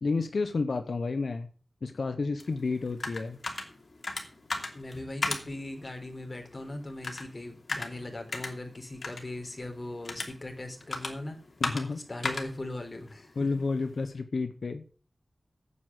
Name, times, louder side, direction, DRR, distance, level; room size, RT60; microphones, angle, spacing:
voice 1, 0.0-1.5 1.8-3.4 11.6-12.3 13.4-14.8, left 4 dB, 85° left, 8 dB, 0.9 m, -31 dB
sound 1, 2.4-14.1, left 2 dB, 65° left, 2.8 m, -39 dB
voice 2, 4.7-11.4 11.9-13.6, left 1 dB, 40° left, 3 dB, 3.8 m, -39 dB
9.4 x 8.5 x 7.6 m, 0.41 s
wide cardioid pair, 60°, 0 cm